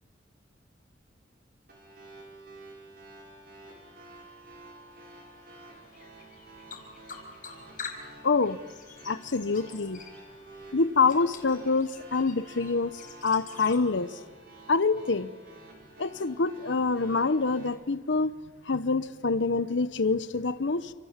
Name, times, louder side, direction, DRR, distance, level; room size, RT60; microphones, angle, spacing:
sound 1, 1.7-17.7, right 2 dB, 50° right, 6.9 m, -50 dB
sound 2, 4.9-13.8, left 5 dB, 45° left, 4.8 m, -47 dB
voice 1, 8.2-8.6 9.0-10.0 10.7-12.9 13.2-14.2 14.7-15.3 16.0-18.3 18.7-20.9, left 4 dB, 80° left, 13 dB, 0.9 m, -26 dB
29.5 x 27.5 x 7.4 m, 1.3 s
head